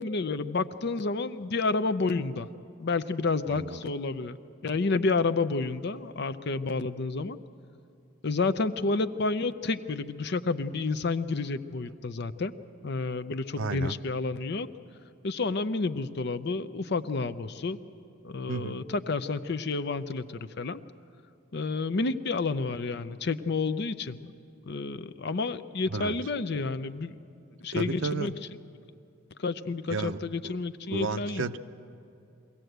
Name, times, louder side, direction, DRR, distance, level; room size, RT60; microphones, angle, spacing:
voice 1, 0.0-2.5 2.8-4.4 4.6-7.4 8.2-12.5 12.8-14.7 15.2-17.8 18.2-20.8 21.5-24.3 24.6-27.2 27.6-28.3 29.4-31.4, left 3 dB, 55° left, 12 dB, 0.6 m, -30 dB
voice 2, 3.5-3.8 13.6-13.9 18.5-18.8 25.9-26.1 27.7-28.4 29.9-30.5 30.9-31.6, right 4 dB, 65° right, 11 dB, 0.6 m, -33 dB
23.0 x 16.5 x 8.0 m, 2.6 s
head